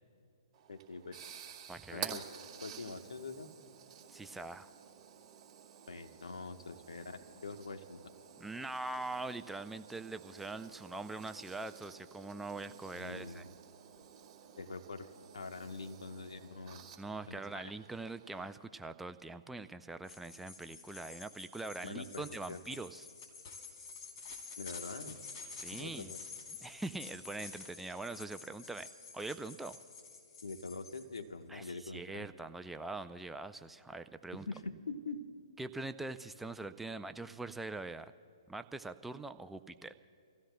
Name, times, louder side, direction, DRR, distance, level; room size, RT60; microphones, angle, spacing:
sound 1, 0.5-18.5, right 8 dB, 25° right, 2.4 m, -51 dB
voice 1, 0.7-1.2 1.9-2.2 2.6-3.5 5.9-8.0 12.9-13.5 14.6-16.8 17.3-17.6 21.8-22.6 24.6-25.2 25.7-26.2 30.4-32.3 34.3-35.2, left 3 dB, 75° left, 6 dB, 1.2 m, -44 dB
voice 2, 1.7-2.2 4.1-4.7 8.4-13.5 17.0-23.1 25.6-26.1 26.6-28.9 29.1-29.8 31.5-34.5 35.6-38.1 38.5-39.9, right 2 dB, 5° right, 10 dB, 0.4 m, -43 dB
sound 2, 20.0-31.2, left 5 dB, 40° left, 3.3 m, -50 dB
30.0 x 16.0 x 2.2 m, 2.4 s
hypercardioid pair, 135°, 3 cm